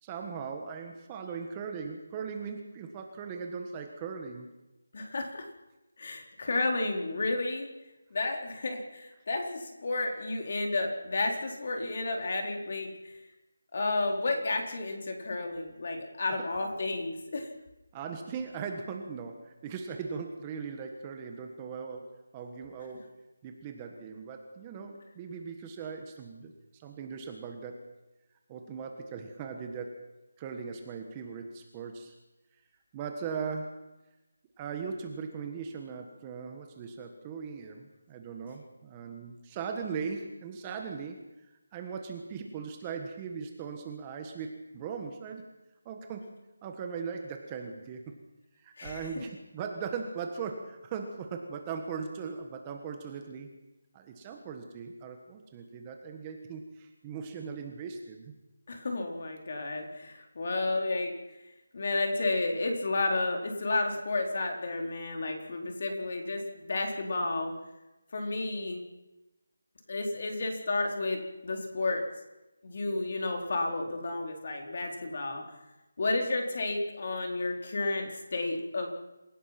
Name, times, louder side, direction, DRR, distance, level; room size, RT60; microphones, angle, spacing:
voice 1, 0.0-4.5 17.9-22.1 22.3-23.1 23.4-27.8 28.5-30.1 30.4-32.1 32.9-33.8 34.6-45.4 45.8-46.3 46.6-48.0 48.6-53.5 53.9-58.3, right 5 dB, 15° right, 4 dB, 1.5 m, -39 dB
voice 2, 4.9-5.4 6.0-7.7 8.1-12.9 13.7-17.5 48.8-49.2 58.7-61.1 61.7-67.5 68.1-68.8 69.9-72.0 72.6-75.4 76.0-78.9, left 2 dB, 45° left, 2 dB, 4.1 m, -31 dB
27.5 x 17.0 x 6.0 m, 1.0 s
figure-of-eight pair, 175°, 0 cm